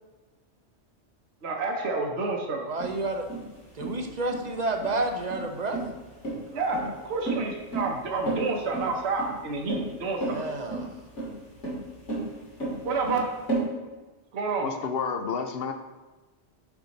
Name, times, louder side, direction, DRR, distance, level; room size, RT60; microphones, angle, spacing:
voice 1, 1.4-2.7 6.5-10.4 12.8-13.4 14.3-14.7, right 3 dB, 70° right, 0 dB, 1.1 m, -29 dB
voice 2, 2.6-3.3 3.8-5.8 10.3-10.9, right 2 dB, 40° right, 4 dB, 0.8 m, -30 dB
sound 1, 2.8-13.6, right 2 dB, 80° left, 2.5 m, -33 dB
voice 3, 14.6-15.7, left 6 dB, 65° left, 6 dB, 0.8 m, -30 dB
7.0 x 5.4 x 4.1 m, 1.2 s
omnidirectional pair, 1.2 m